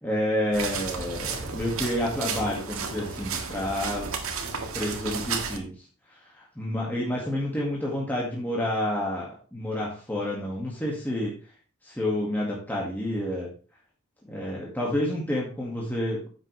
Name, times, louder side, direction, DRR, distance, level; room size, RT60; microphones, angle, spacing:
voice 1, 0.0-4.1 4.7-5.7 6.3-11.3 11.8-13.5 14.3-16.3, left 1 dB, 10° left, -4 dB, 1.9 m, -29 dB
sound 1, 0.5-5.6, right 5 dB, 75° right, 1.7 m, -33 dB
10.5 x 7.8 x 3.3 m, 0.38 s
head